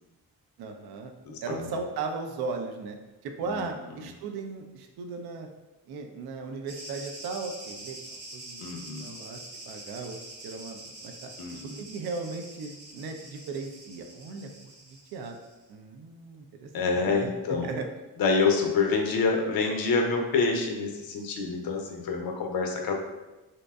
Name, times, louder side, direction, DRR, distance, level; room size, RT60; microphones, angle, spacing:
voice 1, 0.6-1.1 1.4-3.0 3.2-5.5 5.9-8.7 9.0-9.4 9.7-11.3 11.8-15.4 15.7-17.3 17.6-17.9, right 4 dB, 55° right, 4 dB, 0.5 m, -37 dB
voice 2, 1.3-1.6 3.5-3.6 8.6-9.1 11.4-11.8 16.7-17.7 18.2-23.0, left 4 dB, 50° left, 3 dB, 0.5 m, -27 dB
sound 1, 6.7-15.6, right 2 dB, 70° right, 0.9 m, -45 dB
2.6 x 2.1 x 2.2 m, 1.1 s
hypercardioid pair, 40°, 48 cm